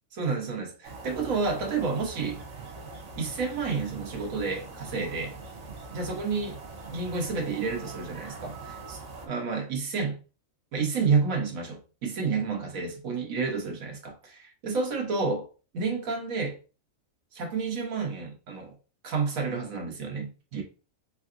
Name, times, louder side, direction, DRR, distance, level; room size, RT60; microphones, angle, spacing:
voice 1, 0.1-2.4 3.2-5.4 5.9-6.6 6.9-10.2 10.7-15.5 15.7-16.6 17.3-18.7 19.0-20.6, right 4 dB, 80° right, 1.4 m, -30 dB
sound 1, 0.8-9.3, right 3 dB, 65° right, 1.2 m, -42 dB
3.8 x 3.5 x 2.5 m
omnidirectional pair, 1.4 m